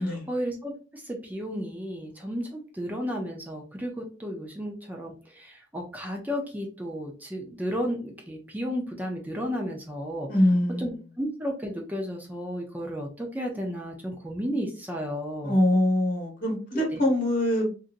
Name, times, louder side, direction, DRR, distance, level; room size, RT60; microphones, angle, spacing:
voice 1, 0.0-10.3 10.8-10.9 11.2-15.6 16.9-17.0, equal, 10° right, 0.5 m, -33 dB
voice 2, 10.3-11.0 15.4-17.7, left 1 dB, 50° left, 1.2 m, -23 dB
2.8 x 2.5 x 2.5 m
head